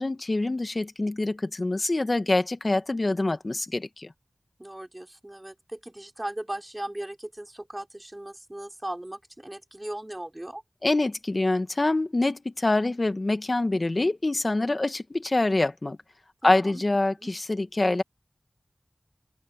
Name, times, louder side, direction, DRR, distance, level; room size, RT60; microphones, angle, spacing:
voice 1, 0.0-4.1 10.8-16.0 16.4-18.0, left 2 dB, 50° left, 1.6 m, -25 dB
voice 2, 4.6-10.6 16.4-16.8 17.2-17.3, right 1 dB, 25° right, 5.4 m, -38 dB
wide cardioid pair, 50°, 0 cm